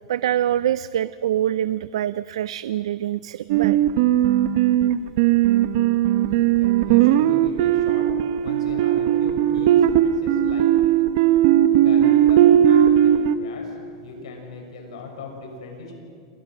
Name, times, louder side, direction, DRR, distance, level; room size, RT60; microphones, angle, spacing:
voice 1, 0.1-3.8, right 11 dB, 90° right, 16 dB, 0.5 m, -25 dB
sound 1, 3.5-13.4, right 11 dB, 65° right, 0.9 m, -18 dB
voice 2, 6.2-8.0 8.4-10.6 11.7-15.9, left 3 dB, 90° left, 2 dB, 6.4 m, -39 dB
28.5 x 22.5 x 6.2 m, 2.5 s
supercardioid pair, 140°, 3 cm